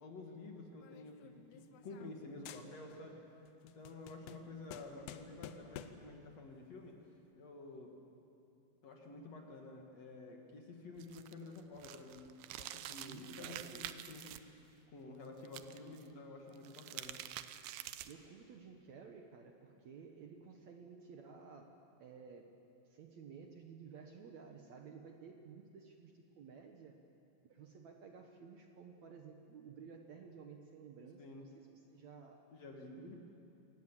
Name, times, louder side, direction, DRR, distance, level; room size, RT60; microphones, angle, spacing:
voice 1, 0.0-3.2 3.7-7.0 7.4-7.9 8.8-12.3 12.5-14.4 14.9-17.2 31.2-31.5 32.5-33.2, left 3 dB, 50° left, 1 dB, 2.6 m, -51 dB
sound 1, 0.8-2.2 2.5-3.1 3.5-6.1, left 10 dB, 80° left, 2.6 m, -52 dB
sound 2, 11.0-14.4 15.5-16.0 16.5-18.3, right 13 dB, 85° right, 2.6 m, -47 dB
voice 2, 13.1-14.0 18.0-22.5 22.9-27.0 27.4-33.2, right 5 dB, 65° right, 3 dB, 2.0 m, -54 dB
26.0 x 19.0 x 7.4 m, 2.7 s
omnidirectional pair, 4.3 m